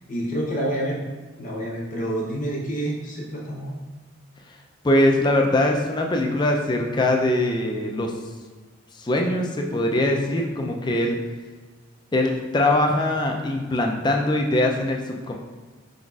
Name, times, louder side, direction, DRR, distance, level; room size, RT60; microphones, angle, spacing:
voice 1, 0.1-1.0 1.4-3.8, right 1 dB, 40° left, -3 dB, 0.8 m, -28 dB
voice 2, 4.8-8.1 8.9-11.2 12.1-15.3, left 1 dB, 20° left, 2 dB, 0.4 m, -22 dB
5.0 x 3.9 x 2.3 m, 1.4 s
head